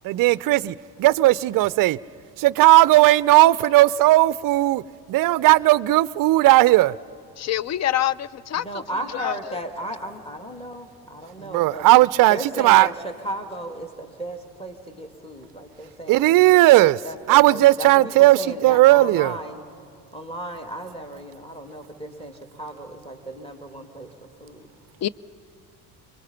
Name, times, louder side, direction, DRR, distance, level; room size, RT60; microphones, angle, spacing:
voice 1, 0.0-2.0 2.4-4.8 5.1-6.9 11.5-12.9 16.1-17.0 17.3-19.3, right 17 dB, 45° right, 0.5 m, -16 dB
voice 2, 7.4-8.6 9.2-9.3 25.0-25.1, left 12 dB, 35° left, 0.5 m, -25 dB
voice 3, 8.5-11.9 12.3-16.3 17.0-19.6 20.1-24.7, right 1 dB, 10° left, 2.6 m, -35 dB
25.5 x 22.5 x 5.8 m
hypercardioid pair, 65°, 47 cm